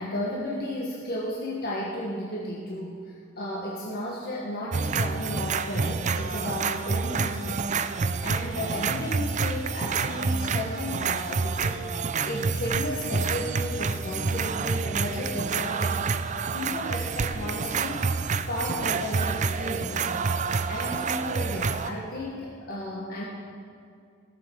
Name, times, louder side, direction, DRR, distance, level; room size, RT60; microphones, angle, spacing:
voice 1, 0.0-20.4 20.7-23.2, left 1 dB, 50° left, -4 dB, 1.6 m, -34 dB
sound 1, 4.7-21.9, right 5 dB, 40° right, 0.5 m, -28 dB
15.5 x 7.0 x 7.2 m, 2.4 s
head